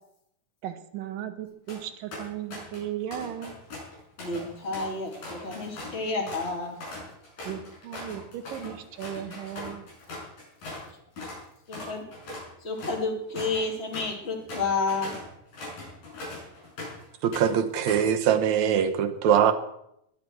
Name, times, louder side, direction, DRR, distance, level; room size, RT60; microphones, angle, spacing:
voice 1, 0.6-3.5 4.8-4.9 7.4-9.9, right 10 dB, 80° right, 10 dB, 2.7 m, -36 dB
sound 1, 1.5-1.8 2.1-2.8 3.1-10.9 11.2-11.4 11.7-17.0 17.3-18.1, left 2 dB, 80° left, 8.5 m, -40 dB
voice 2, 4.2-6.8 11.7-12.0 12.6-15.1, left 3 dB, 20° left, 1 dB, 2.4 m, -30 dB
voice 3, 17.2-19.5, right 8 dB, 65° right, 8 dB, 2.1 m, -22 dB
22.0 x 10.5 x 4.6 m, 0.78 s
omnidirectional pair, 3.9 m